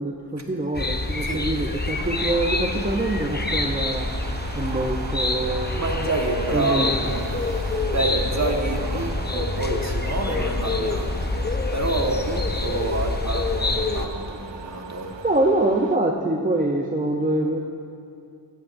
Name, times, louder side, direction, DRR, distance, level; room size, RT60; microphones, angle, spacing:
voice 1, 0.0-4.1 4.5-5.8 6.5-6.9 15.2-17.6, right 2 dB, 20° right, 0 dB, 0.7 m, -24 dB
sound 1, 0.7-14.1, left 2 dB, 20° left, 0.8 m, -26 dB
sound 2, 1.9-16.0, right 7 dB, 75° right, 0.6 m, -39 dB
voice 2, 5.7-7.2 7.6-11.2 11.4-15.2, right 2 dB, 40° right, 1 dB, 1.5 m, -28 dB
15.5 x 14.5 x 2.6 m, 2.5 s
wide cardioid pair, 50°, 44 cm